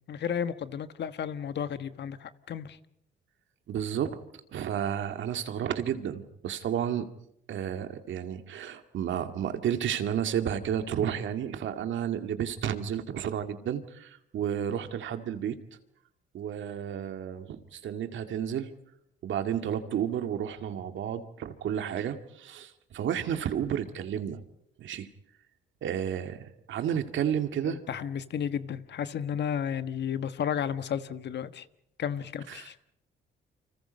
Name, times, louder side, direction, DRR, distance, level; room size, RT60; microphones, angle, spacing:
voice 1, 0.0-2.8 27.6-31.7 32.0-32.7, left 8 dB, 60° left, 1.4 m, -33 dB
voice 2, 3.7-4.2 4.5-7.0 7.5-15.6 16.3-18.7 19.2-24.4 24.8-25.1 25.8-27.8 32.5-32.9, right 9 dB, 75° right, 2.2 m, -32 dB
29.5 x 25.5 x 5.3 m
cardioid pair, 90°, 20 cm